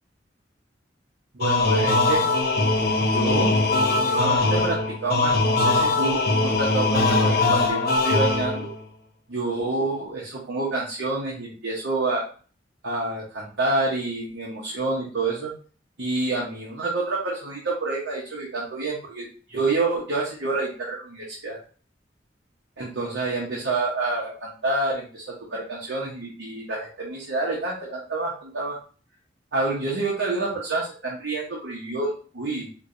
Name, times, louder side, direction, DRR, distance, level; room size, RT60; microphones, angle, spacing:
voice 1, 1.3-2.3 3.0-3.6 3.9-8.7 9.3-12.3 12.8-15.5 16.0-21.6 22.8-28.8 29.5-32.7, right 2 dB, 75° right, -4 dB, 0.9 m, -28 dB
sound 1, 1.4-8.8, left 2 dB, 55° left, 0.6 m, -21 dB
4.5 x 2.2 x 2.6 m, 0.41 s
head